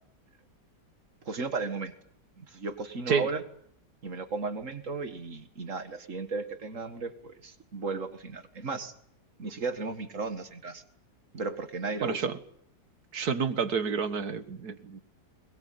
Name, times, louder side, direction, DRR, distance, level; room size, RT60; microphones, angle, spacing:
voice 1, 1.3-1.9 2.4-3.4 4.0-8.9 9.4-10.8 11.3-12.3, right 4 dB, 50° right, 10 dB, 2.3 m, -35 dB
voice 2, 12.0-12.4 13.1-15.0, right 6 dB, 65° right, 12 dB, 2.1 m, -29 dB
22.0 x 21.5 x 9.5 m, 0.69 s
omnidirectional pair, 1.8 m